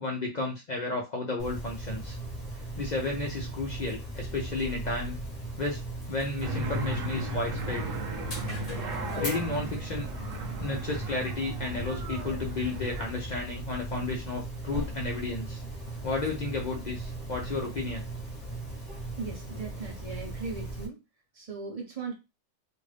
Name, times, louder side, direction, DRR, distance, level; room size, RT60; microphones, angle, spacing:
voice 1, 0.0-2.2 2.8-5.2 5.6-5.8 6.1-7.9 9.2-10.1 10.6-15.6 16.0-18.1, left 3 dB, 55° left, 0 dB, 0.4 m, -33 dB
Dog, 1.4-20.9, right 1 dB, 30° left, 1.0 m, -38 dB
sound 1, 6.4-13.1, right 1 dB, 65° right, 1.0 m, -35 dB
voice 2, 19.2-21.0 21.3-22.1, right 4 dB, 35° right, 0 dB, 0.7 m, -38 dB
2.6 x 2.5 x 3.2 m, 0.25 s
omnidirectional pair, 1.5 m